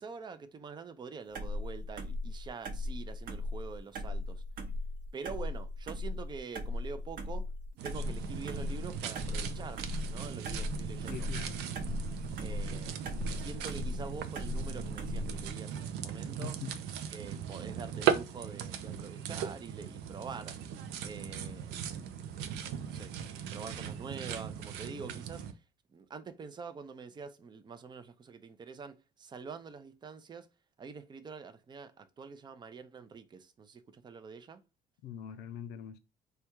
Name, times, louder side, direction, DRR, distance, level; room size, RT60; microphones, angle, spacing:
voice 1, 0.0-4.4 5.1-7.5 7.8-11.3 12.4-16.5 17.1-20.6 21.0-21.8 22.8-23.1 23.5-25.6 25.9-30.5 30.8-34.6, right 5 dB, 25° right, 0.5 m, -46 dB
sound 1, 1.3-15.5, left 1 dB, 55° right, 0.8 m, -38 dB
sound 2, 7.8-25.5, right 8 dB, 90° right, 0.5 m, -38 dB
voice 2, 11.1-11.6 16.4-16.7 35.0-36.0, left 8 dB, 85° left, 0.5 m, -42 dB
3.4 x 2.3 x 4.4 m
cardioid pair, 110°, 17 cm